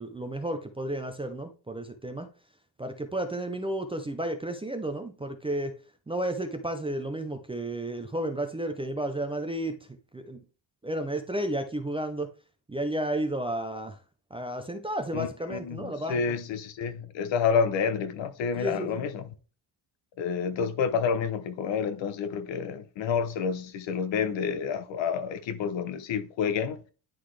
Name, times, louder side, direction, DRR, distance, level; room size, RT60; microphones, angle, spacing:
voice 1, 0.0-2.3 2.8-5.7 6.1-9.8 10.1-10.4 10.8-12.3 12.7-14.0 14.3-16.4 18.6-19.1, right 1 dB, 15° right, 0.4 m, -32 dB
voice 2, 15.1-19.3 20.2-26.8, left 6 dB, 70° left, 0.8 m, -29 dB
10.0 x 3.9 x 3.2 m
cardioid pair, 165°, 47 cm